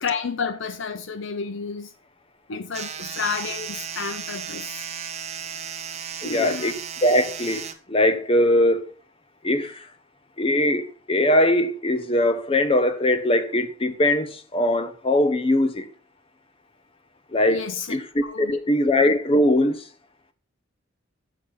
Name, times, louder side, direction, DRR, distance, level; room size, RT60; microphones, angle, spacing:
voice 1, 0.0-1.9 2.5-4.8 6.2-6.7 17.5-18.0 18.2-18.6, left 5 dB, 65° left, 0.6 m, -31 dB
sound 1, 2.7-7.7, right 7 dB, 35° right, 0.9 m, -34 dB
voice 2, 6.2-8.8 9.4-9.9 10.4-15.9 17.3-17.6 17.9-19.8, left 1 dB, 30° left, 0.9 m, -21 dB
6.8 x 6.6 x 5.7 m
head